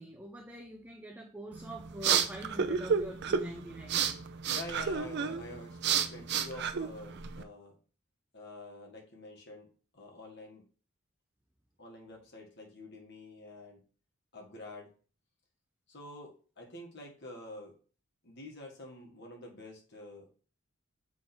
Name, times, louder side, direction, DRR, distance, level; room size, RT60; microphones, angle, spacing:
voice 1, 0.0-4.1, equal, 10° right, 0.6 m, -44 dB
sound 1, 1.5-7.4, right 7 dB, 60° right, 0.5 m, -31 dB
voice 2, 4.4-7.8 8.3-10.6 11.8-13.8 14.3-14.9 15.9-17.8 18.2-20.3, left 2 dB, 60° left, 1.8 m, -47 dB
7.3 x 3.7 x 4.3 m
head